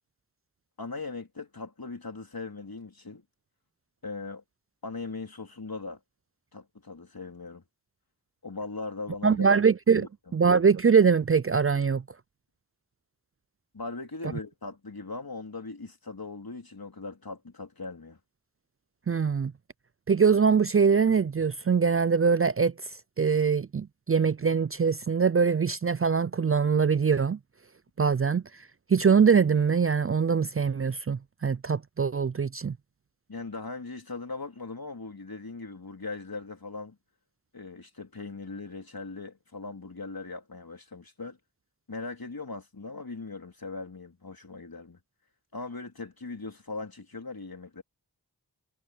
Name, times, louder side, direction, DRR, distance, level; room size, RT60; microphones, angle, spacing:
voice 1, 0.8-3.2 4.0-4.4 4.8-6.0 6.5-7.6 8.4-9.5 10.0-10.1 13.7-18.2 33.3-37.0 37.5-41.4 41.9-45.0 45.5-47.8, left 3 dB, 65° left, 3.7 m, -39 dB
voice 2, 9.2-10.1 10.3-12.0 19.1-19.5 20.1-22.7 23.2-27.4 28.0-28.4 28.9-32.7, right 6 dB, 35° right, 0.4 m, -23 dB
wide cardioid pair, 45°, 39 cm